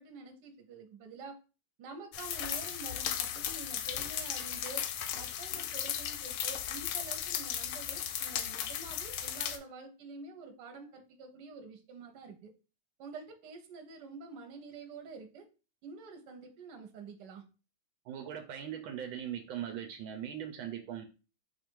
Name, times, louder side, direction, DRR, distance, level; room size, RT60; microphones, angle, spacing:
voice 1, 0.0-1.4 1.8-4.9 5.1-12.5 13.0-15.5 15.8-17.5, right 4 dB, 60° right, 5 dB, 1.4 m, -48 dB
sound 1, 2.1-9.6, left 9 dB, 85° left, 1.4 m, -36 dB
voice 2, 18.0-21.0, right 9 dB, 80° right, 5 dB, 1.4 m, -40 dB
4.8 x 2.5 x 4.5 m, 0.32 s
omnidirectional pair, 2.3 m